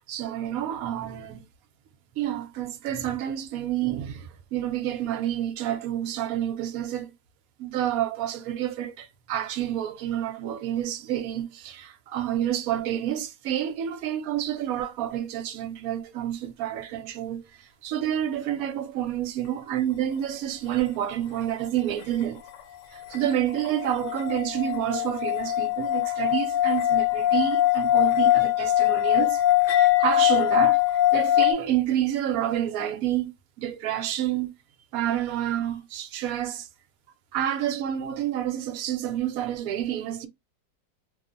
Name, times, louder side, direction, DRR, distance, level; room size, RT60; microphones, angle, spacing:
voice 1, 0.0-1.4 2.2-7.1 7.6-22.4 22.9-29.4 29.7-30.8 31.1-33.3 33.6-34.5 34.9-36.7 37.3-40.3, right 11 dB, 70° right, 0.9 m, -29 dB
sound 1, 23.1-31.5, left 14 dB, 75° left, 1.2 m, -22 dB
2.9 x 2.1 x 2.4 m
omnidirectional pair, 1.9 m